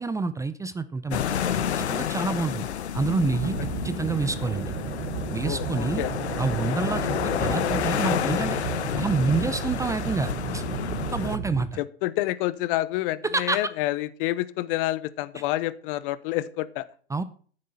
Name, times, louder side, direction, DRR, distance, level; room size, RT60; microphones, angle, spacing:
voice 1, 0.0-1.4 1.8-2.7 2.9-4.7 5.3-6.1 6.4-7.1 7.4-8.6 8.9-10.6 11.1-11.7 13.2-13.6 15.3-15.4 17.1-17.2, right 3 dB, 10° right, 13 dB, 0.6 m, -28 dB
sound 1, 1.1-11.4, left 9 dB, 75° left, 1.2 m, -29 dB
sound 2, 3.3-11.7, right 9 dB, 40° right, 1.3 m, -33 dB
voice 2, 5.4-6.1 11.8-16.9, left 16 dB, 50° left, 17 dB, 1.0 m, -28 dB
14.0 x 7.7 x 4.2 m, 0.44 s
hypercardioid pair, 105°, 33 cm